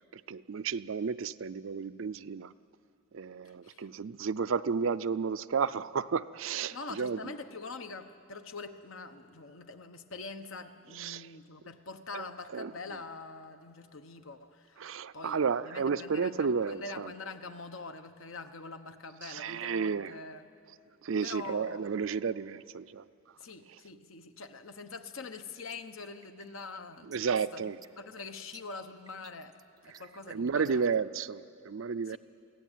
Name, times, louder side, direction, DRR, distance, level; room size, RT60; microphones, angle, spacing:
voice 1, 0.0-2.5 3.1-7.4 10.9-11.4 12.1-13.0 14.8-17.1 19.2-20.2 21.0-23.4 23.7-23.8 27.0-27.8 29.8-32.2, right 5 dB, 65° right, 14 dB, 0.5 m, -33 dB
voice 2, 3.4-3.9 6.7-15.4 15.6-20.5 21.2-21.8 23.4-27.2 27.5-27.6 28.0-29.6 29.8-30.8 32.1-32.2, left 3 dB, 75° left, 8 dB, 1.1 m, -44 dB
sound 1, 25.3-31.0, right 6 dB, 20° right, 0.6 m, -57 dB
23.0 x 16.5 x 9.2 m, 2.5 s
head